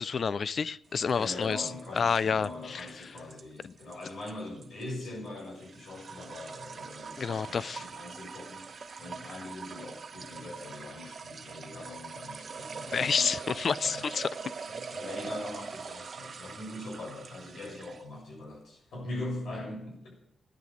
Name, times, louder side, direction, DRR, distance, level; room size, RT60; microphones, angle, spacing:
voice 1, 0.0-1.7 2.0-2.9 3.6-3.7 7.2-7.9 12.9-14.3, left 6 dB, 60° left, 0.5 m, -29 dB
sound 1, 1.0-18.1, right 5 dB, 55° right, 1.2 m, -43 dB
voice 2, 1.1-8.7 9.0-13.3 13.8-14.1 14.7-20.2, left 1 dB, 80° left, 6.7 m, -42 dB
14.0 x 10.5 x 7.5 m
cardioid pair, 75°, 0 cm